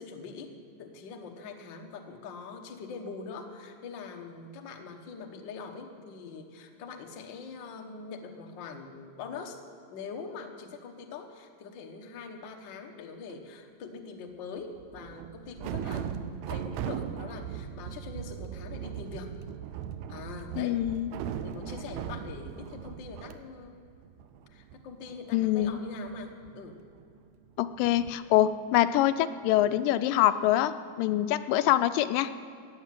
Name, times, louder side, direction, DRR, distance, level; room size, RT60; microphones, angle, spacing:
voice 1, 0.0-9.6 9.9-19.3 20.1-20.8 21.4-23.8 24.5-26.8, left 5 dB, 70° left, 3 dB, 1.1 m, -43 dB
sound 1, 13.3-13.4 14.8-23.3 23.7-23.8 24.0-27.2 27.8-28.1, right 9 dB, 85° right, 1.6 m, -39 dB
voice 2, 20.6-21.1 25.3-25.8 27.6-30.7 31.0-32.3, left 13 dB, 90° left, 12 dB, 2.3 m, -25 dB
15.0 x 9.6 x 7.4 m, 2.4 s
omnidirectional pair, 3.8 m